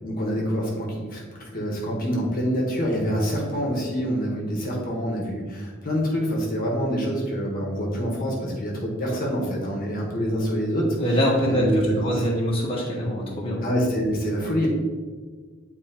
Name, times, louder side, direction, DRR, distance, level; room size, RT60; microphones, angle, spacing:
voice 1, 0.0-11.0 11.4-12.2 13.6-14.7, equal, 45° left, -2 dB, 1.4 m, -26 dB
voice 2, 10.9-13.6, equal, 30° left, -5 dB, 1.4 m, -24 dB
9.2 x 4.3 x 3.0 m, 1.5 s
head